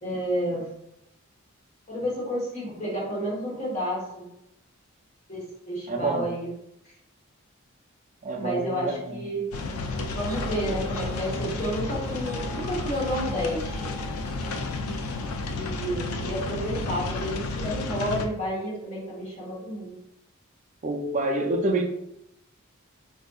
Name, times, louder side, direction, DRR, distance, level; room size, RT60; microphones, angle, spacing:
voice 1, 0.0-0.7 1.9-4.3 5.3-6.5 8.3-9.4 10.1-13.9 15.5-19.9, equal, 30° left, -4 dB, 1.1 m, -30 dB
voice 2, 5.9-6.3 8.2-9.2 20.8-21.9, right 2 dB, 35° right, 2 dB, 0.4 m, -27 dB
sound 1, 9.5-18.3, left 2 dB, 80° left, 0.4 m, -32 dB
sound 2, 10.2-17.4, left 2 dB, 15° right, 0.8 m, -45 dB
4.2 x 2.6 x 2.3 m, 0.82 s
head